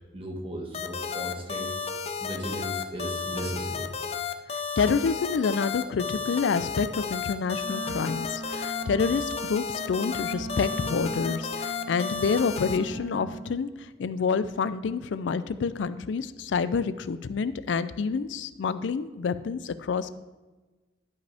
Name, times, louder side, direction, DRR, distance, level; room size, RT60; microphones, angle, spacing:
voice 1, 0.1-1.7 2.2-3.9, right 1 dB, 30° right, 1 dB, 1.4 m, -36 dB
sound 1, 0.7-12.8, left 6 dB, 35° left, 0.5 m, -33 dB
voice 2, 4.8-13.7 14.0-20.1, left 5 dB, 90° left, 14 dB, 0.4 m, -28 dB
Wind instrument woodwind instrument, 7.6-13.7, right 4 dB, 10° left, 2.2 m, -39 dB
11.5 x 5.2 x 3.4 m, 1.2 s
head